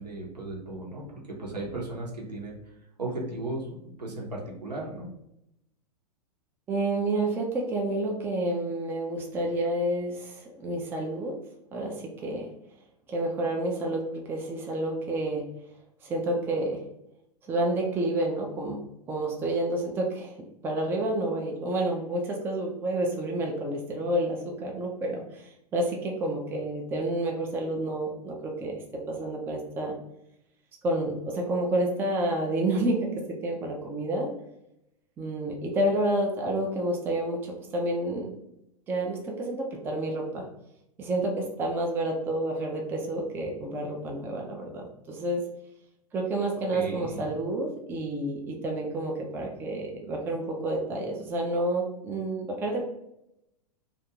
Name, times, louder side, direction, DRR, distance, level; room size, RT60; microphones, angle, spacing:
voice 1, 0.0-2.6 3.0-5.1 46.7-47.2, right 2 dB, 80° right, -2 dB, 0.9 m, -36 dB
voice 2, 6.7-11.4 11.7-12.5 13.1-15.5 16.0-16.8 17.5-18.8 19.1-20.4 20.6-29.9 30.8-34.3 35.2-38.3 38.9-40.5 41.0-45.4 46.1-52.8, right 1 dB, 10° right, 0 dB, 0.4 m, -29 dB
2.5 x 2.3 x 2.9 m, 0.81 s
figure-of-eight pair, 100°, 21 cm